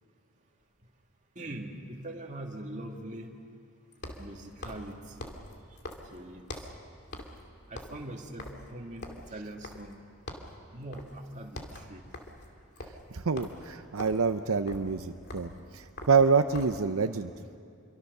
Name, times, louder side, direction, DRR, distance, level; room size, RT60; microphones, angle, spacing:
sound 1, 0.6-0.7 3.9-6.8 7.1-7.4 7.7-10.0 10.3-10.6 10.9-11.2 11.5-16.9, left 1 dB, 50° left, 2.5 m, -44 dB
voice 1, 1.4-3.3 4.2-5.3 6.1-6.7 7.7-9.9 10.7-12.0, right 1 dB, 35° right, 1 dB, 2.4 m, -42 dB
voice 2, 13.1-17.3, right 5 dB, 80° right, 8 dB, 0.7 m, -27 dB
28.0 x 23.5 x 6.8 m, 2.3 s
head